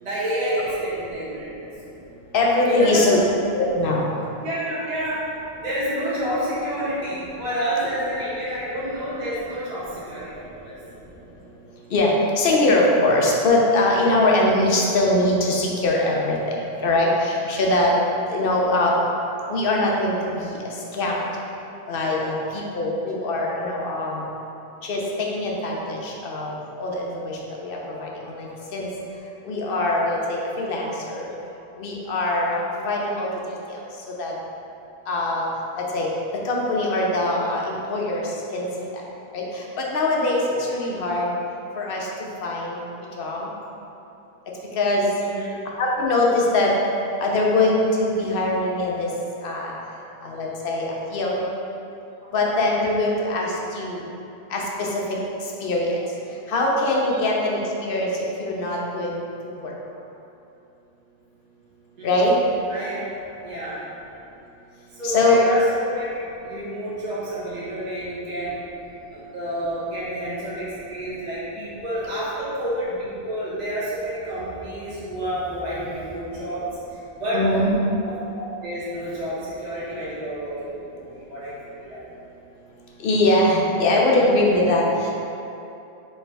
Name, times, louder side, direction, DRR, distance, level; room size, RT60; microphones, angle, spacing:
voice 1, 0.0-1.7 2.7-3.2 4.4-5.2 5.6-10.7 45.2-45.5 57.1-57.2 62.0-62.3 62.7-63.0 63.4-63.8 64.9-66.1 66.4-68.5 69.1-76.6 76.9-77.4 78.1-81.5 81.8-82.0, right 1 dB, 45° right, -9 dB, 1.0 m, -29 dB
voice 2, 2.3-3.2 3.5-4.1 11.9-17.9 18.3-18.9 19.5-21.2 21.9-24.2 24.8-28.9 29.4-31.3 31.8-33.3 33.7-33.8 34.2-34.3 35.1-35.5 35.8-36.1 36.4-38.2 38.5-38.7 39.3-41.3 41.8-42.1 42.4-42.8 43.2-43.5 44.7-45.1 45.8-46.7 47.2-49.1 49.4-49.7 50.2-51.5 52.3-54.0 54.5-55.2 55.6-56.0 56.5-58.1 58.4-59.2 59.6-59.7 62.0-62.4 65.0-65.4 77.3-77.7 83.0-85.1, left 2 dB, 65° left, -2 dB, 0.8 m, -22 dB
3.2 x 3.1 x 4.6 m, 2.8 s
omnidirectional pair, 1.1 m